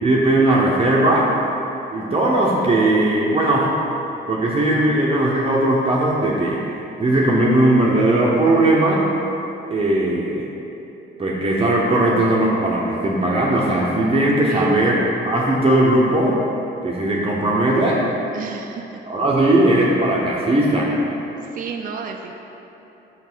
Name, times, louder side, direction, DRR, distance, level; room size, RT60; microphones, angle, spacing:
voice 1, 0.0-1.3 1.9-3.7 4.3-6.6 7.0-9.0 9.7-10.4 11.2-15.0 15.2-16.4 16.8-18.0 19.1-20.9, right 1 dB, 30° right, -4 dB, 0.9 m, -18 dB
voice 2, 14.5-15.0 18.3-19.0 21.4-22.3, right 5 dB, 45° right, 2 dB, 0.5 m, -31 dB
5.4 x 4.9 x 6.2 m, 3.0 s
cardioid pair, 90°, 20 cm